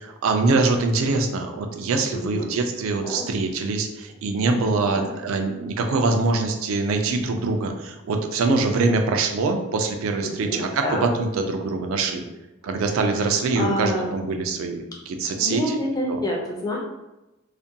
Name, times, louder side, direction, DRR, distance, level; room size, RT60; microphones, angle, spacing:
voice 1, 0.0-12.2 12.6-15.6 16.1-16.2, right 3 dB, 90° right, 4 dB, 0.4 m, -24 dB
voice 2, 2.1-2.5 3.0-3.2 4.9-5.1 10.2-11.1 13.2-14.1 15.4-16.8, equal, 20° left, -2 dB, 0.4 m, -28 dB
2.4 x 2.2 x 2.6 m, 0.99 s
head